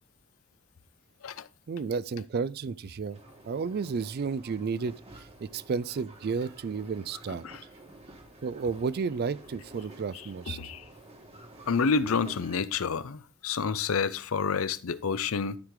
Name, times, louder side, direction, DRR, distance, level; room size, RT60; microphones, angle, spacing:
voice 1, 1.7-3.2 3.5-7.4 8.4-10.6, right 5 dB, 50° right, 0.4 m, -32 dB
sound 1, 3.1-12.6, right 2 dB, 30° right, 1.4 m, -51 dB
voice 2, 10.5-10.8 11.7-15.6, left 5 dB, 90° left, 0.6 m, -29 dB
12.0 x 4.8 x 3.7 m
head